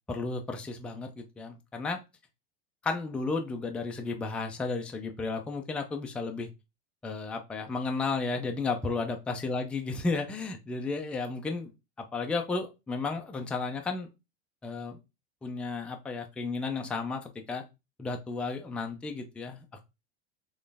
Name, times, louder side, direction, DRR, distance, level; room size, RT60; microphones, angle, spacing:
voice 1, 0.1-2.0 2.8-6.5 7.0-11.7 12.1-14.1 14.6-15.0 15.4-17.6 18.0-19.9, left 3 dB, 5° left, 3 dB, 0.3 m, -33 dB
4.1 x 3.1 x 3.4 m, 0.25 s
supercardioid pair, 150°, 32 cm